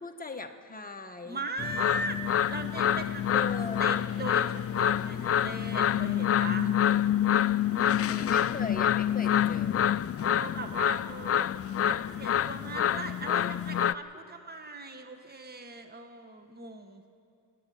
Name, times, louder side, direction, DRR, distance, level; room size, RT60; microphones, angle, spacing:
voice 1, 0.0-1.4 3.3-3.9 6.5-7.0 8.0-9.9, left 2 dB, 20° left, 4 dB, 1.4 m, -39 dB
voice 2, 1.2-3.5 3.8-6.7 7.7-8.4 10.2-11.5 11.8-17.0, right 2 dB, 20° right, 6 dB, 1.4 m, -39 dB
sound 1, 1.6-13.9, left 10 dB, 35° left, 0.4 m, -27 dB
27.0 x 10.5 x 9.4 m, 2.6 s
cardioid pair, 90°, 44 cm